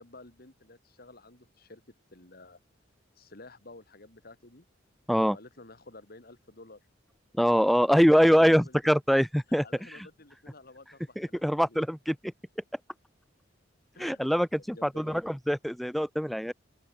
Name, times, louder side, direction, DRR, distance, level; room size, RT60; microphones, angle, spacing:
voice 1, 0.0-1.8 2.1-2.6 3.2-4.6 5.3-6.9 7.9-8.9 9.6-11.8 13.9-14.2 14.7-15.2, left 2 dB, 55° left, 3.0 m, -51 dB
voice 2, 7.4-9.6 11.2-12.2 14.0-16.5, equal, ahead, 0.6 m, -23 dB
open air
head